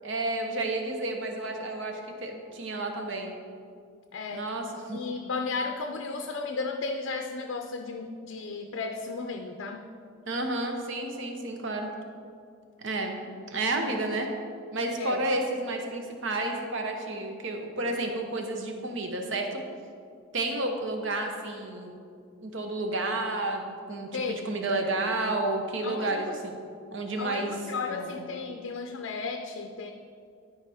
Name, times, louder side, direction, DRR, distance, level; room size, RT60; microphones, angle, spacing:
voice 1, 0.0-3.3 4.3-5.0 10.3-11.9 12.8-14.3 14.7-19.6 20.3-22.0 22.4-26.6 26.9-27.6 27.9-28.2, right 2 dB, 65° right, 3 dB, 0.9 m, -31 dB
voice 2, 4.1-4.4 4.9-9.9 15.0-15.3 24.1-24.4 25.8-26.4 27.2-29.9, left 4 dB, 75° left, 4 dB, 0.5 m, -34 dB
12.0 x 4.9 x 3.5 m, 2.3 s
head